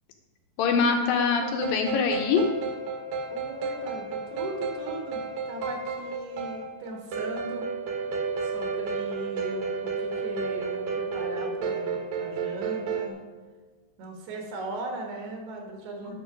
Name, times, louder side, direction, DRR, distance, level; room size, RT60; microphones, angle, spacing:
voice 1, 0.6-2.4 16.0-16.1, left 5 dB, 75° left, 4 dB, 2.3 m, -24 dB
sound 1, 1.4-13.1, right 4 dB, 65° right, 2.1 m, -32 dB
voice 2, 3.3-7.7 8.4-13.2 14.0-16.1, right 2 dB, 85° right, 1 dB, 3.6 m, -38 dB
10.0 x 6.4 x 5.1 m, 1.4 s
omnidirectional pair, 4.6 m